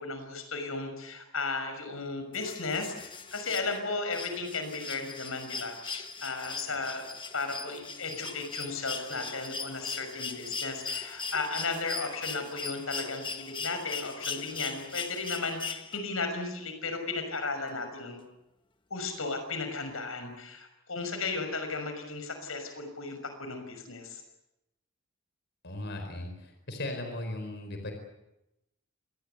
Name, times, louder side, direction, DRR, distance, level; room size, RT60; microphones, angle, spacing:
voice 1, 0.0-7.0 7.3-18.2 18.9-24.2, left 3 dB, 90° left, 7 dB, 6.1 m, -35 dB
sound 1, 2.3-16.3 17.7-17.8, left 4 dB, 25° left, 1.4 m, -39 dB
voice 2, 25.6-27.9, left 1 dB, 60° left, 5 dB, 4.6 m, -37 dB
26.5 x 20.5 x 8.2 m, 0.90 s
head